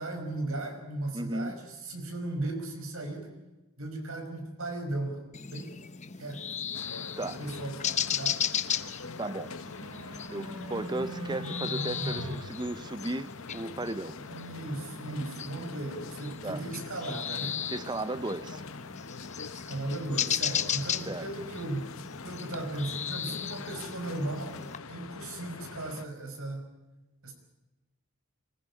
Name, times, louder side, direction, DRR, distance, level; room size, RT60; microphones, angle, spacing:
voice 1, 0.0-3.3 3.8-5.8 6.2-6.5 7.2-7.8 8.2-8.4 14.3-17.6 19.6-21.9 22.2-24.6 24.9-26.6 27.2-27.3, right 2 dB, 70° right, 5.4 m, -36 dB
voice 2, 1.1-1.5 7.2-7.4 9.2-9.6 10.3-14.2 16.4-16.6 17.7-18.6 21.1-21.3, right 2 dB, 20° right, 0.7 m, -35 dB
sound 1, 5.3-24.8, left 8 dB, 30° left, 0.8 m, -36 dB
sound 2, 6.7-26.1, left 4 dB, 65° left, 0.9 m, -44 dB
sound 3, 9.1-12.3, equal, 85° right, 5.5 m, -39 dB
25.0 x 15.5 x 8.5 m
head